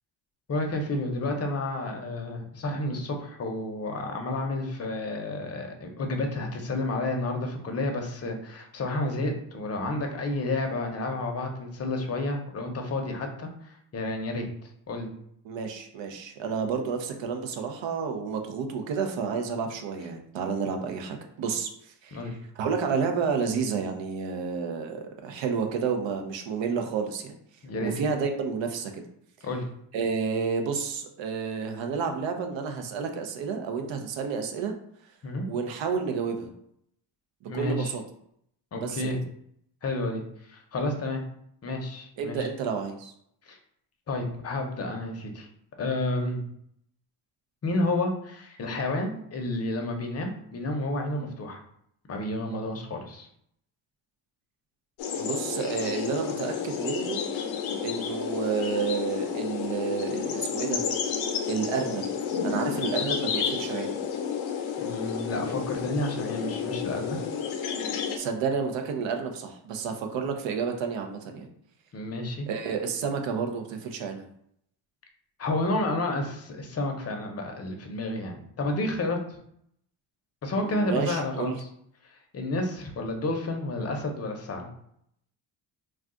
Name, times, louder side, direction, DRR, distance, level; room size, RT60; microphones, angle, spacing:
voice 1, 0.5-13.5 13.9-14.5 14.9-15.1 22.1-22.3 27.6-27.9 29.4-29.6 35.2-35.5 37.5-37.9 38.7-39.2 39.8-40.2 40.5-41.2 41.6-42.5 43.5-43.6 44.1-45.5 45.8-46.4 47.6-51.6 52.1-53.3 64.8-67.2 71.9-72.5 75.4-79.2 80.4-81.7 82.3-84.7, left 2 dB, 30° left, 3 dB, 0.6 m, -30 dB
voice 2, 15.4-21.7 22.0-27.3 27.8-29.0 29.9-34.7 35.5-36.5 37.5-38.0 38.7-39.1 42.2-43.1 55.2-57.2 57.8-60.8 61.5-62.1 62.4-64.0 68.2-71.5 72.5-74.3 80.6-81.6, right 5 dB, 65° right, 5 dB, 0.6 m, -30 dB
sound 1, 55.0-68.2, left 7 dB, 70° left, 0.7 m, -31 dB
2.3 x 2.3 x 3.7 m, 0.70 s
cardioid pair, 95°, 49 cm